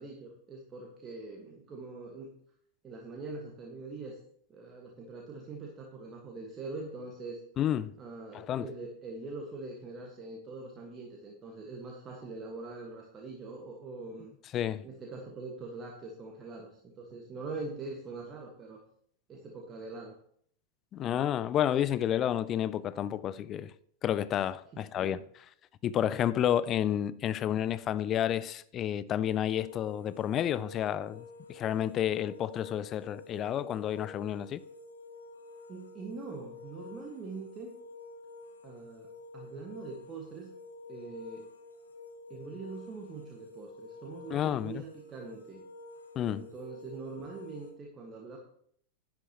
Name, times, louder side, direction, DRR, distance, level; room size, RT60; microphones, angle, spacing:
voice 1, 0.0-2.3 2.8-4.2 4.5-7.4 8.0-14.3 14.8-18.8 19.3-20.1 24.7-25.2 35.7-37.7 38.6-39.1 39.3-40.5 40.9-41.5 42.3-45.6 46.2-48.4, right 3 dB, 25° right, 1.5 m, -43 dB
voice 2, 7.6-7.9 8.3-8.7 14.5-14.8 20.9-23.7 24.0-25.2 25.8-31.2 31.5-34.6 44.3-44.8 46.2-46.5, left 10 dB, 30° left, 0.4 m, -30 dB
sound 1, 29.5-47.7, left 3 dB, 80° left, 1.5 m, -50 dB
11.0 x 9.5 x 2.9 m
figure-of-eight pair, 90°, 0 cm